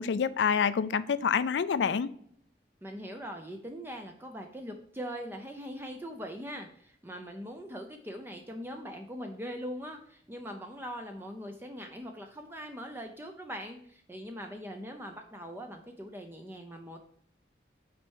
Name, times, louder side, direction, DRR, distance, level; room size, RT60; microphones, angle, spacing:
voice 1, 0.0-2.1, left 6 dB, 80° left, 0.4 m, -27 dB
voice 2, 2.8-17.0, equal, 15° right, 0.6 m, -41 dB
5.9 x 4.5 x 4.6 m
head